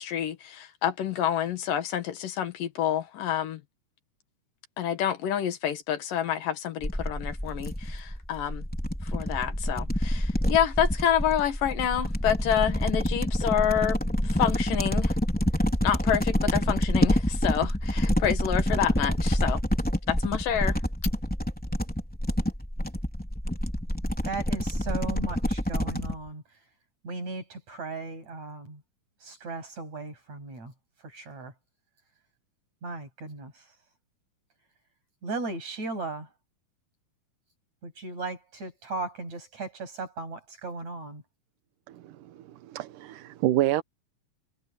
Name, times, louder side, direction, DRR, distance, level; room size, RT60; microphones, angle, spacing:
voice 1, 0.0-3.6 4.8-8.7 9.0-15.2 15.8-19.6 20.1-20.8, left 10 dB, 75° left, 3.3 m, -28 dB
sound 1, 6.8-26.1, equal, 5° left, 3.3 m, -27 dB
voice 2, 24.2-26.4 27.0-28.8 29.2-30.7 31.0-31.5 32.8-33.7 35.2-36.3 37.8-41.2, right 3 dB, 50° right, 8.7 m, -37 dB
voice 3, 41.9-43.8, right 14 dB, 75° right, 2.4 m, -28 dB
omnidirectional pair, 4.0 m